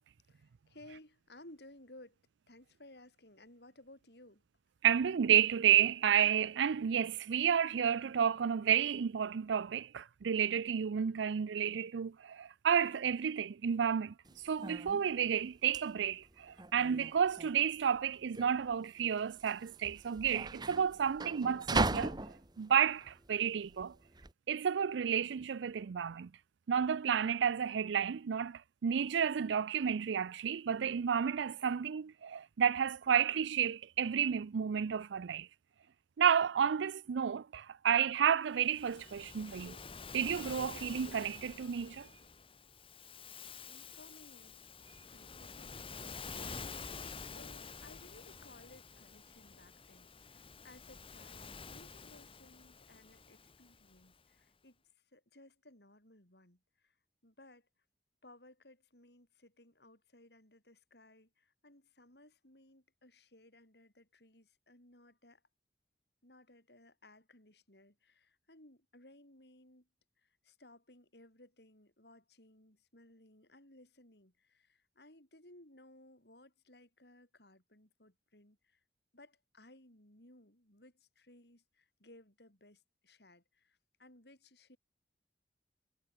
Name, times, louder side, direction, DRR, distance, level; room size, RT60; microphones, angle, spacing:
voice 1, 0.3-2.2 2.5-4.4 43.7-44.6 45.1-47.0 47.3-57.0 57.2-57.7 58.2-65.4 66.2-69.9 70.2-78.8 79.1-84.8, left 1 dB, 65° left, 7.0 m, -60 dB
voice 2, 4.8-14.1 14.4-22.2 22.6-23.9 24.5-26.3 26.7-35.5 36.2-39.8 40.1-42.1, right 8 dB, 85° right, 0.4 m, -31 dB
sound 1, 14.3-24.3, right 2 dB, 25° right, 1.5 m, -39 dB
Waves surf, 38.6-54.1, left 5 dB, 30° left, 2.8 m, -49 dB
head